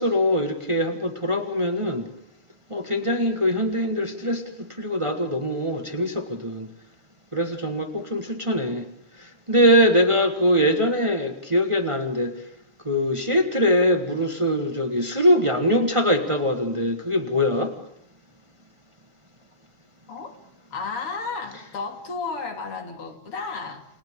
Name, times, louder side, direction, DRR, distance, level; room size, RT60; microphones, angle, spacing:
voice 1, 0.0-2.1 2.7-6.7 7.3-8.9 9.2-12.3 12.8-17.7, equal, 15° right, 5 dB, 1.4 m, -22 dB
voice 2, 20.7-23.9, left 4 dB, 85° left, 4 dB, 3.6 m, -33 dB
30.0 x 27.0 x 3.8 m, 0.74 s
omnidirectional pair, 2.4 m